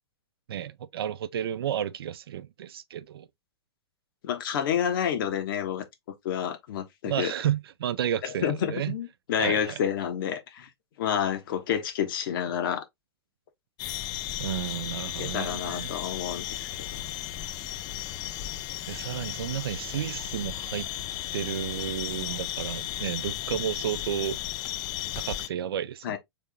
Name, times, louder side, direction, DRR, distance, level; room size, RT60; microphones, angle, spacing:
voice 1, 0.5-3.3 7.0-9.0 9.4-9.8 14.4-16.0 18.9-20.9 21.3-24.4 25.1-26.2, right 10 dB, 65° right, 0.5 m, -32 dB
voice 2, 4.2-5.8 6.2-7.3 8.2-10.7 11.0-12.8 15.2-17.0 26.0-26.2, left 8 dB, 55° left, 1.2 m, -29 dB
sound 1, 13.8-25.5, left 13 dB, 30° left, 0.4 m, -35 dB
3.6 x 3.4 x 3.5 m
hypercardioid pair, 110°, 13 cm